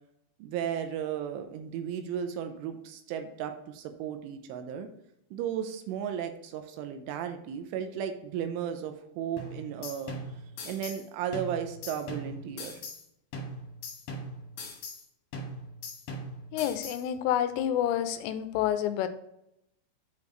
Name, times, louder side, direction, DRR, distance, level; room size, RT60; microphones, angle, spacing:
voice 1, 0.4-4.9 5.3-10.2 10.6-12.8, right 8 dB, 80° right, 7 dB, 3.1 m, -35 dB
sound 1, 9.4-11.0 11.3-13.0 13.3-15.0 15.3-17.0, left 1 dB, 65° left, 3.2 m, -40 dB
voice 2, 16.5-19.1, left 11 dB, 85° left, 10 dB, 3.1 m, -28 dB
8.4 x 5.1 x 3.1 m, 0.78 s
omnidirectional pair, 5.8 m